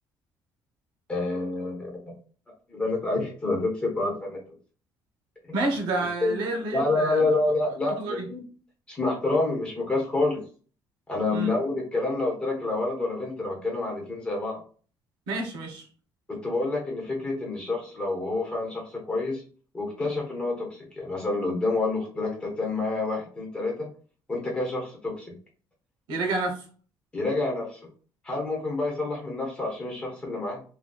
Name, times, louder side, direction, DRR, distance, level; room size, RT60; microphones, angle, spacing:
voice 1, 1.1-2.0 2.7-4.4 6.2-6.3 6.7-8.4 8.9-10.4 11.1-14.6 16.3-19.4 19.7-23.9 24.3-25.3 27.1-27.8 28.2-30.6, left 2 dB, 15° left, -1 dB, 1.1 m, -28 dB
voice 2, 5.5-7.2 8.0-8.3 11.3-11.5 15.3-15.9 26.1-26.6, right 2 dB, 85° right, 3 dB, 0.9 m, -29 dB
4.0 x 2.3 x 2.3 m, 0.41 s
cardioid pair, 175°, 8 cm